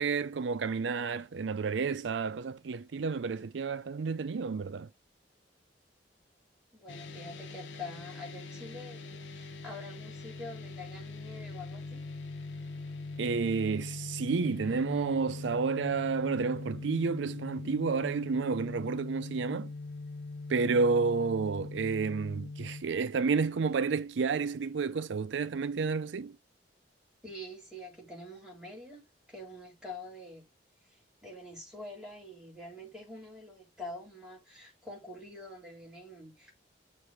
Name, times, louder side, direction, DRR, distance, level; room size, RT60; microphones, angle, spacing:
voice 1, 0.0-4.9 13.2-19.7 20.5-26.4, right 4 dB, 85° right, 0.5 m, -30 dB
voice 2, 6.7-12.0 27.2-29.0 29.3-30.4 30.9-36.5, left 1 dB, 5° right, 3.4 m, -46 dB
sound 1, 6.9-22.8, left 3 dB, 85° left, 0.8 m, -42 dB
6.7 x 3.3 x 6.1 m
head